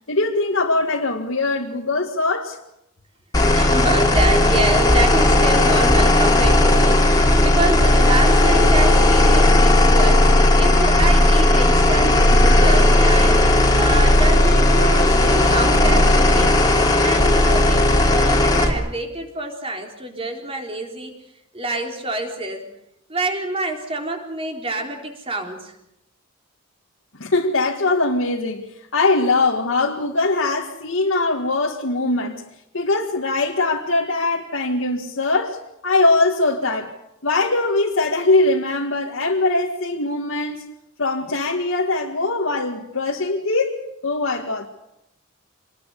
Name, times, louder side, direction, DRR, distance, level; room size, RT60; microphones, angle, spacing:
voice 1, 0.1-2.6 27.2-28.6 28.9-32.4 32.7-35.6 35.8-36.9 37.2-40.7 41.0-44.7, left 2 dB, 90° left, 2.0 m, -21 dB
sound 1, 3.3-18.7, left 1 dB, 20° left, 3.0 m, -15 dB
voice 2, 3.5-13.4 13.8-16.6 17.0-21.1 21.5-22.6 23.1-25.7, right 2 dB, 30° right, 4.0 m, -27 dB
26.0 x 20.5 x 6.9 m
head